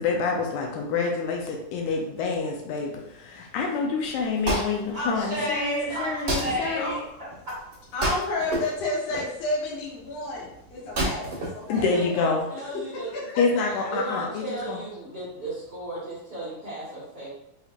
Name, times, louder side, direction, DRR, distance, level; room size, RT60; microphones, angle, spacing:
voice 1, 0.0-7.0 11.7-12.4 13.4-14.8, left 4 dB, 75° left, 1 dB, 1.9 m, -27 dB
Wood, 4.0-12.4, right 1 dB, 45° right, 1.0 m, -32 dB
voice 2, 4.9-7.0 11.7-13.1 13.9-17.3, right 1 dB, 75° right, -9 dB, 0.9 m, -33 dB
voice 3, 7.9-11.9 12.5-12.7 13.1-13.9, left 2 dB, 60° left, -5 dB, 1.9 m, -31 dB
5.6 x 2.8 x 2.5 m, 0.80 s
omnidirectional pair, 4.0 m